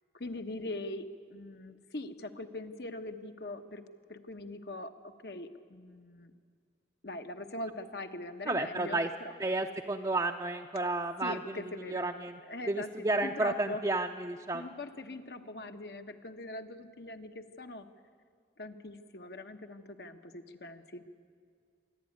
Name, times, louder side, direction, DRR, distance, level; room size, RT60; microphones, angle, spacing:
voice 1, 0.1-3.8 4.1-4.9 5.2-6.3 7.0-9.3 11.2-12.1 12.5-13.8 14.5-17.9 18.6-21.1, left 2 dB, 70° left, 7 dB, 1.1 m, -42 dB
voice 2, 8.5-9.1 9.4-11.6 11.9-12.4 12.7-14.7, right 2 dB, 20° right, 2 dB, 0.5 m, -32 dB
25.5 x 11.5 x 9.5 m, 2.1 s
head